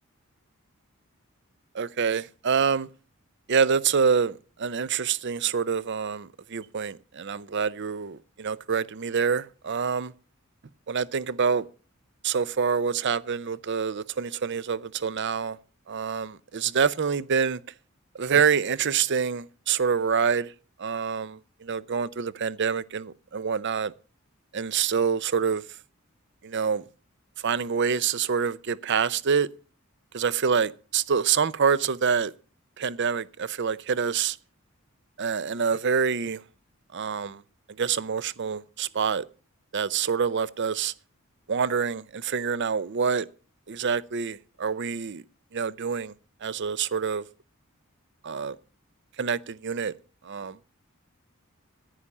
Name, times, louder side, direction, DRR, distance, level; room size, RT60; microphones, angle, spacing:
voice 1, 1.7-2.9 3.5-10.1 10.9-11.6 12.2-15.6 15.9-17.6 18.1-20.5 20.8-23.9 24.5-25.6 26.4-26.8 27.4-29.5 30.1-32.3 32.8-34.4 35.2-36.4 36.9-37.4 37.8-39.2 39.7-40.9 41.5-43.3 43.7-45.2 45.5-46.1 46.4-47.3 48.2-48.6 49.2-49.9 50.2-50.6, right 6 dB, 55° right, 0.6 m, -26 dB
10.0 x 9.7 x 7.2 m
head